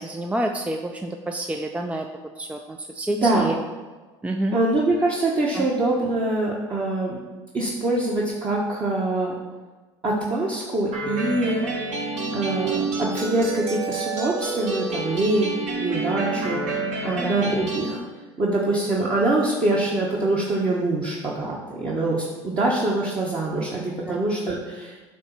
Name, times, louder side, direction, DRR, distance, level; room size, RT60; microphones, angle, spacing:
voice 1, 0.0-2.1 2.4-3.6 4.2-4.6 5.5-5.7 11.6-11.7 17.1-17.4 24.1-24.2, right 1 dB, 10° right, 4 dB, 0.5 m, -28 dB
voice 2, 3.1-3.5 4.5-7.2 7.5-9.3 10.0-11.6 12.3-18.0 18.4-25.0, right 2 dB, 30° right, -5 dB, 1.3 m, -24 dB
sound 1, 10.9-17.9, right 3 dB, 50° right, 1.7 m, -28 dB
8.3 x 3.0 x 5.9 m, 1.3 s
hypercardioid pair, 85°, 15 cm